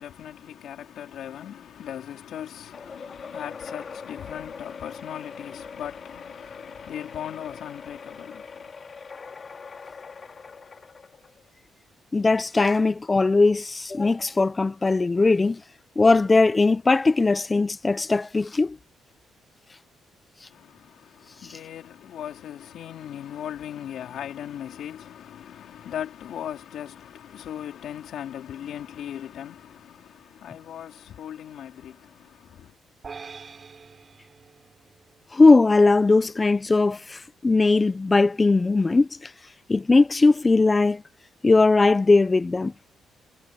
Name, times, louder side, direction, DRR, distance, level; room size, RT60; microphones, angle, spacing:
voice 1, 0.0-8.7 20.5-32.7, left 10 dB, 70° left, 4.6 m, -38 dB
sound 1, 2.7-11.5, left 5 dB, 40° left, 3.4 m, -42 dB
voice 2, 12.1-15.6 16.0-18.8 35.3-39.3 39.7-41.0 41.4-42.7, left 3 dB, 25° left, 0.9 m, -19 dB
sound 2, 33.0-35.5, right 5 dB, 40° right, 6.6 m, -44 dB
cardioid pair, 90°, 0 cm